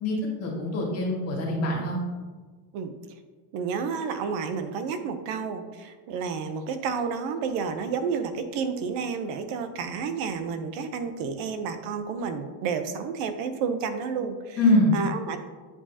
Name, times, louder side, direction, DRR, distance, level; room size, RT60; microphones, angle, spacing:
voice 1, 0.0-2.0 14.6-14.9, left 1 dB, 35° left, -4 dB, 2.0 m, -24 dB
voice 2, 3.5-14.6 14.9-15.4, right 5 dB, 65° right, 8 dB, 0.8 m, -30 dB
8.1 x 4.9 x 2.8 m, 1.4 s
cardioid pair, 145°, 44 cm